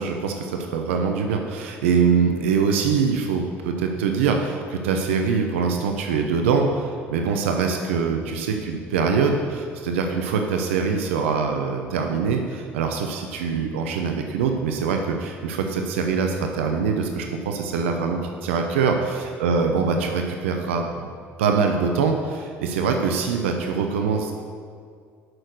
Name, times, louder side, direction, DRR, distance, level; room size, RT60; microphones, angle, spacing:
voice 1, 0.0-21.1 21.4-24.3, right 5 dB, 80° right, 4 dB, 0.8 m, -23 dB
8.8 x 6.5 x 6.5 m, 2.2 s
hypercardioid pair, 65°, 7 cm